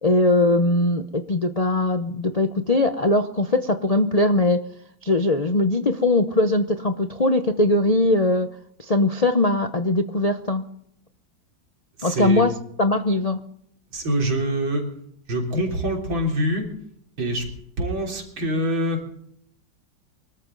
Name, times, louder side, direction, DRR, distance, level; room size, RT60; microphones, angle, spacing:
voice 1, 0.0-4.6 5.0-8.5 8.8-10.7 12.0-12.5 12.8-13.4, left 2 dB, 50° left, 7 dB, 0.4 m, -20 dB
voice 2, 12.0-12.4 13.9-14.9 15.3-16.6 17.2-17.5 17.8-19.0, right 1 dB, 85° right, 1 dB, 4.3 m, -24 dB
24.5 x 13.5 x 3.9 m, 0.70 s
omnidirectional pair, 2.1 m